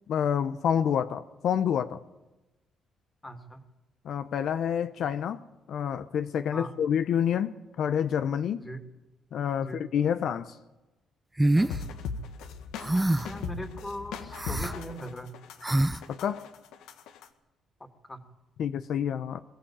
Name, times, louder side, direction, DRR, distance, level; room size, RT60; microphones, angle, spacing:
voice 1, 0.1-2.0 4.0-5.4 5.7-8.7 9.3-10.6 16.1-16.5 18.6-19.4, left 8 dB, 70° left, 0.8 m, -28 dB
voice 2, 3.2-3.6 6.5-6.7 8.6-8.8 9.6-9.8 13.2-15.3 18.1-18.2, equal, 15° left, 2.4 m, -39 dB
sound 1, 11.4-11.7 12.8-13.4 14.3-14.7 15.6-16.0, right 1 dB, 10° right, 0.6 m, -25 dB
sound 2, 11.6-17.3, left 5 dB, 90° left, 1.5 m, -39 dB
22.0 x 15.0 x 8.8 m
cardioid pair, 90°, 0 cm